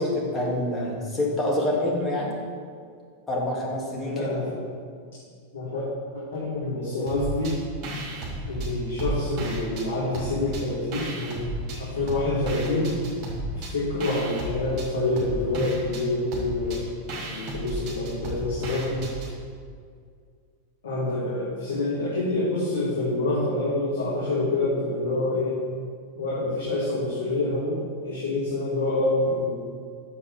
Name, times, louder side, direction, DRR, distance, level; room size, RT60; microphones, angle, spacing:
voice 1, 0.0-2.4 3.3-4.3, left 1 dB, 15° left, -3 dB, 1.9 m, -26 dB
voice 2, 4.1-4.6 5.5-5.8 6.1-7.6 8.5-11.5 11.7-13.0 13.5-16.8 17.3-19.1 20.8-25.6 26.2-29.6, left 2 dB, 60° left, -8 dB, 1.9 m, -27 dB
sound 1, 7.1-7.6 7.8-9.9 10.1-11.8 12.1-19.3, right 1 dB, 35° right, 2.3 m, -33 dB
6.9 x 5.2 x 6.9 m, 2.1 s
figure-of-eight pair, 90°, 0 cm